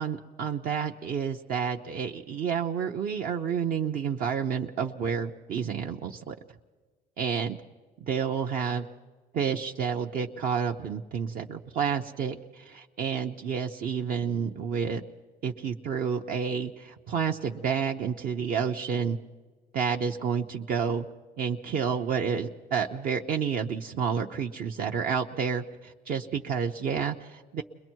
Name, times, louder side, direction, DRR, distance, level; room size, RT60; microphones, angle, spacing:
voice 1, 0.0-6.4 7.2-7.6 8.0-8.9 9.3-15.0 15.4-19.2 19.7-21.1 21.4-27.6, right 7 dB, 60° right, 2 dB, 0.8 m, -30 dB
29.5 x 21.5 x 4.6 m, 1.4 s
cardioid pair, 110°, 17 cm